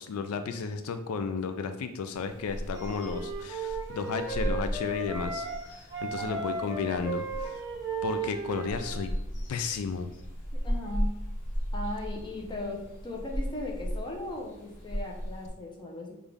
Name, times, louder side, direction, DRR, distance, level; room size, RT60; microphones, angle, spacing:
voice 1, 0.0-7.6 8.0-9.1 9.5-10.1, left 5 dB, 85° left, 9 dB, 0.4 m, -33 dB
sound 1, 2.1-15.5, equal, 55° left, 1.0 m, -36 dB
Wind instrument woodwind instrument, 2.7-5.6 5.9-9.1, right 3 dB, 15° right, 0.8 m, -35 dB
voice 2, 6.2-6.9 10.5-11.1 11.7-16.1, left 2 dB, 20° left, 0 dB, 0.8 m, -38 dB
5.4 x 2.4 x 3.4 m, 0.90 s
head